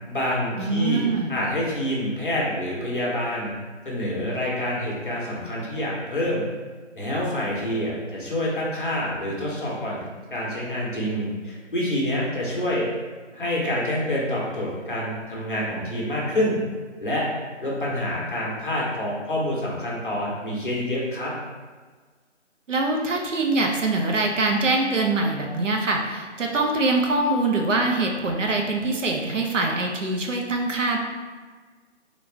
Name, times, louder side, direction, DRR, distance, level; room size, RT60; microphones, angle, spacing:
voice 1, 0.1-3.5 3.8-6.4 6.9-10.0 10.3-12.9 13.3-16.6 17.0-17.3 17.6-21.3, left 1 dB, 45° left, -5 dB, 1.0 m, -27 dB
voice 2, 0.6-1.4 22.7-31.0, right 2 dB, 85° right, 1 dB, 0.8 m, -23 dB
3.9 x 2.5 x 3.4 m, 1.4 s
figure-of-eight pair, 175°, 37 cm